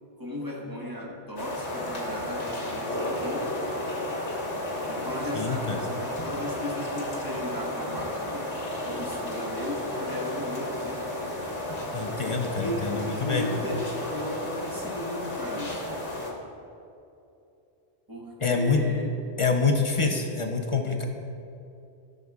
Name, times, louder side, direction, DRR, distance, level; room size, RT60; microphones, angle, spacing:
voice 1, 0.2-3.6 4.9-8.5 8.8-11.1 12.2-15.9 18.1-19.1, left 1 dB, 20° right, -3 dB, 1.1 m, -36 dB
sound 1, 1.4-16.3, left 1 dB, 85° left, 1.7 m, -33 dB
voice 2, 5.3-5.8 11.9-13.5 18.4-18.8 19.4-21.0, left 4 dB, 40° left, 3 dB, 0.5 m, -26 dB
14.0 x 6.6 x 2.3 m, 2.7 s
omnidirectional pair, 1.2 m